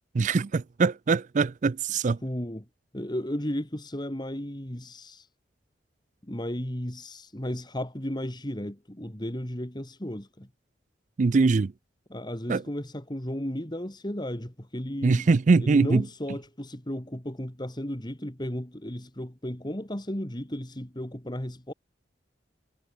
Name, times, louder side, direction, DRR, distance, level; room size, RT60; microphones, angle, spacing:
voice 1, 0.1-2.2 11.2-11.7 12.5-12.6 15.0-16.0, right 4 dB, 45° right, 0.4 m, -22 dB
voice 2, 2.2-2.7 2.9-5.3 6.2-10.5 12.1-15.3 15.6-21.7, equal, 25° left, 2.6 m, -34 dB
head